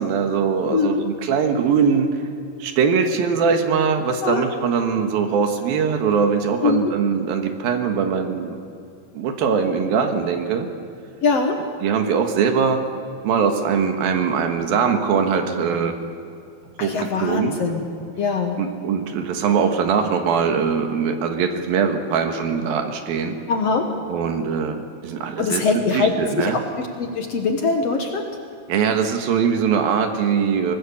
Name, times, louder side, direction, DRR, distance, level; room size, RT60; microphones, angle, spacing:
voice 1, 0.0-2.1 2.6-8.6 9.1-10.7 11.8-12.8 13.2-15.9 16.8-17.6 18.6-23.4 24.1-26.6 28.7-30.8, right 6 dB, 80° right, 5 dB, 3.3 m, -21 dB
voice 2, 0.7-1.0 4.2-4.4 6.6-6.9 11.2-11.6 16.8-17.8 18.2-18.6 23.5-23.9 25.4-26.6 27.0-28.3, left 4 dB, 55° left, 4 dB, 2.0 m, -22 dB
24.5 x 18.5 x 7.1 m, 2.6 s
omnidirectional pair, 4.2 m